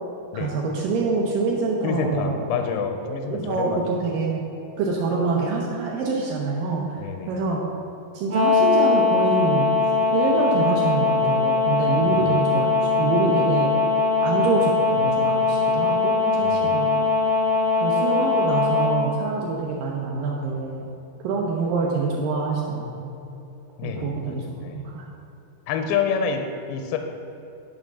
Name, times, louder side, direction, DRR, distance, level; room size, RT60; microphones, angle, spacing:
voice 1, 0.3-2.5 3.0-4.4 4.7-7.6 8.1-9.7 10.1-13.7 14.2-17.0 17.8-20.9 21.2-23.1 23.8-25.1, right 4 dB, 80° right, -2 dB, 2.0 m, -26 dB
voice 2, 1.8-3.8 7.0-7.4 12.1-12.2 16.4-16.9 23.8-24.9 25.7-27.0, left 6 dB, 85° left, 5 dB, 2.1 m, -28 dB
sound 1, 8.3-19.0, left 4 dB, 60° right, 1.2 m, -21 dB
10.5 x 3.6 x 6.1 m, 2.9 s
omnidirectional pair, 4.7 m